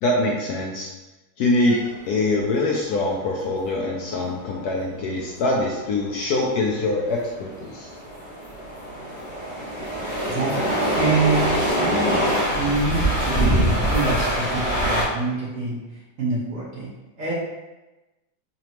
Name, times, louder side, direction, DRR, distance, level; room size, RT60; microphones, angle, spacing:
voice 1, 0.0-0.9 1.4-1.8 2.1-7.9, left 2 dB, 70° left, -2 dB, 0.9 m, -24 dB
sound 1, 1.6-15.0, right 1 dB, 20° left, 1.0 m, -25 dB
voice 2, 10.2-10.6 11.0-12.3 12.6-15.8 16.2-16.9 17.2-17.3, right 2 dB, 55° right, -6 dB, 1.1 m, -26 dB
4.1 x 3.0 x 2.9 m, 1.1 s
omnidirectional pair, 2.0 m